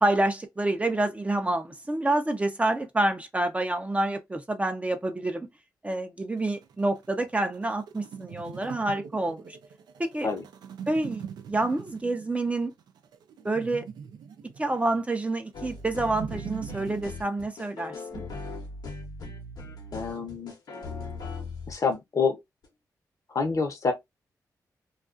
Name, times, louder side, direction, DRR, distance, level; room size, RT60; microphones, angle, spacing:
voice 1, 0.0-5.5 5.8-9.6 10.0-10.3 10.9-12.7 13.4-13.9 14.6-18.3, right 2 dB, 20° right, 0.5 m, -28 dB
sound 1, 6.4-17.0, right 7 dB, 90° right, 0.4 m, -43 dB
sound 2, 15.5-21.9 22.6-22.7, left 3 dB, 80° left, 0.9 m, -39 dB
voice 2, 19.9-20.5 21.7-22.4 23.3-23.9, left 5 dB, 50° left, 0.7 m, -27 dB
2.3 x 2.3 x 2.4 m
cardioid pair, 75°, 7 cm